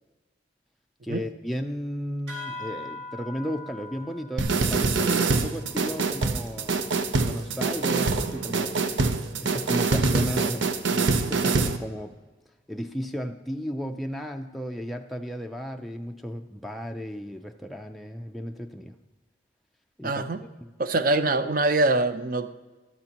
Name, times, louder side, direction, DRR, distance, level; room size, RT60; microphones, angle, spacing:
voice 1, 1.0-8.8 9.4-12.2 12.7-19.0 20.0-20.2 20.6-20.7, equal, ahead, 3 dB, 0.4 m, -34 dB
sound 1, 2.3-7.2, left 2 dB, 65° right, 2.9 m, -43 dB
sound 2, 4.4-11.8, right 4 dB, 85° right, 0.7 m, -25 dB
voice 2, 20.0-20.4 20.8-22.5, right 2 dB, 50° right, 11 dB, 0.6 m, -24 dB
13.0 x 12.0 x 2.9 m, 1.2 s
head